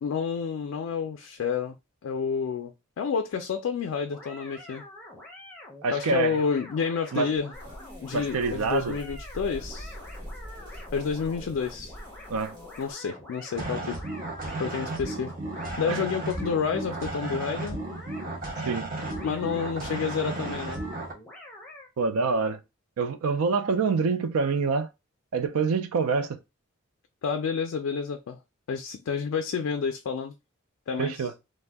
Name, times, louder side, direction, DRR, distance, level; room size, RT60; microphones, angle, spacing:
voice 1, 0.0-1.8 2.0-4.8 5.9-7.5 8.0-9.9 10.9-11.9 12.8-14.0 14.6-15.3 15.8-17.8 19.2-20.8 27.2-28.4 28.7-30.3 30.9-31.1, left 6 dB, 70° left, 0.3 m, -29 dB
sound 1, 4.1-21.9, left 1 dB, 5° left, 0.6 m, -46 dB
voice 2, 5.8-6.4 7.1-7.3 8.1-9.0 12.3-12.6 15.9-16.0 18.6-18.9 22.0-22.6 23.0-24.9 25.3-26.4 31.0-31.3, right 4 dB, 90° right, 0.4 m, -26 dB
sound 2, 7.5-12.9, equal, 20° right, 1.2 m, -43 dB
sound 3, 13.5-21.1, right 2 dB, 40° right, 0.7 m, -34 dB
2.5 x 2.1 x 3.3 m
head